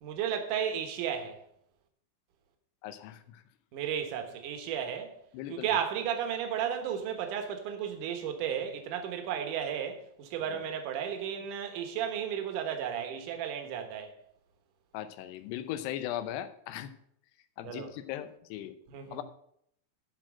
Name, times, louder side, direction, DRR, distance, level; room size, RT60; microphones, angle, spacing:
voice 1, 0.0-1.4 3.7-5.1 5.5-14.1 17.6-17.9 18.9-19.2, right 8 dB, 65° right, 2.4 m, -34 dB
voice 2, 2.8-3.4 5.3-5.7 10.5-10.6 14.9-16.9 17.6-18.7 19.1-19.2, left 12 dB, 90° left, 2.9 m, -38 dB
12.0 x 4.5 x 7.5 m
omnidirectional pair, 4.7 m